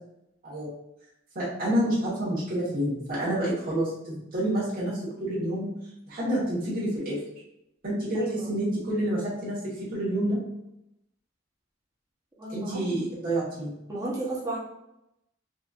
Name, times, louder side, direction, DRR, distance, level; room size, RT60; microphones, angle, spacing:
voice 1, 1.3-5.7 6.1-7.2 7.8-10.4 12.5-13.7, right 1 dB, 45° right, -9 dB, 1.3 m, -28 dB
voice 2, 8.1-8.5 12.4-12.9 13.9-14.6, right 2 dB, 15° right, -6 dB, 0.9 m, -33 dB
4.1 x 2.6 x 2.5 m, 0.84 s
head